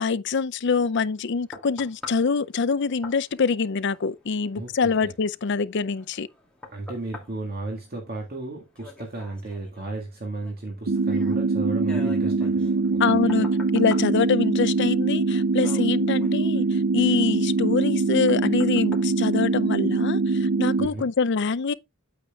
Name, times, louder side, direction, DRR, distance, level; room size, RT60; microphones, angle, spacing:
voice 1, 0.0-6.3 13.0-13.5 13.7-21.7, left 5 dB, 60° left, 0.5 m, -25 dB
sound 1, 0.8-20.1 20.6-20.7, left 2 dB, 5° left, 2.8 m, -47 dB
voice 2, 6.7-13.3 20.8-21.1, right 2 dB, 50° right, 1.9 m, -34 dB
sound 2, 10.9-20.9, right 3 dB, 85° right, 0.7 m, -23 dB
8.8 x 8.2 x 2.4 m
head